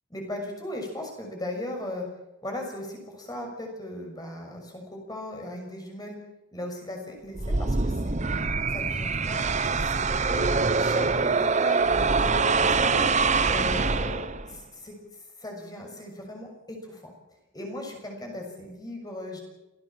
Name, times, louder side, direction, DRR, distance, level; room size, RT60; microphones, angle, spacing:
voice 1, 0.1-2.0 2.4-6.2 6.5-8.1 8.7-10.4 10.8-13.1 13.5-14.9 15.4-17.0 17.5-19.4, left 1 dB, 20° left, 2 dB, 6.5 m, -37 dB
sound 1, 7.3-14.6, right 4 dB, 35° right, 1.0 m, -24 dB
27.5 x 17.5 x 7.4 m, 0.95 s
head